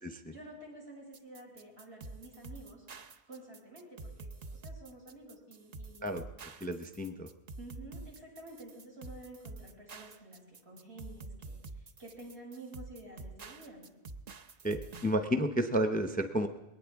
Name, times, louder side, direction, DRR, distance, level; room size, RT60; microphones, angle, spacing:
voice 1, 0.2-2.8 3.3-6.3 7.6-13.8, right 1 dB, 75° right, -3 dB, 6.6 m, -50 dB
sound 1, 1.1-15.1, right 3 dB, 45° right, 0.7 m, -47 dB
voice 2, 6.6-7.3 14.6-16.5, equal, 10° left, 7 dB, 0.7 m, -31 dB
21.0 x 18.5 x 3.6 m, 1.0 s
omnidirectional pair, 1.1 m